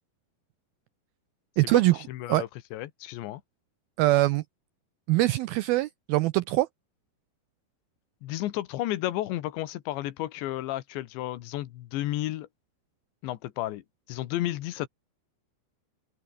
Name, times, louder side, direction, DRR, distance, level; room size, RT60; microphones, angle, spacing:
voice 1, 1.6-2.0 2.3-2.4 4.0-4.4 5.1-6.7, right 18 dB, 90° right, 2.1 m, -23 dB
voice 2, 2.1-3.4 8.2-12.5 13.2-13.8 14.1-14.9, left 15 dB, 85° left, 3.6 m, -32 dB
open air
omnidirectional pair, 5.0 m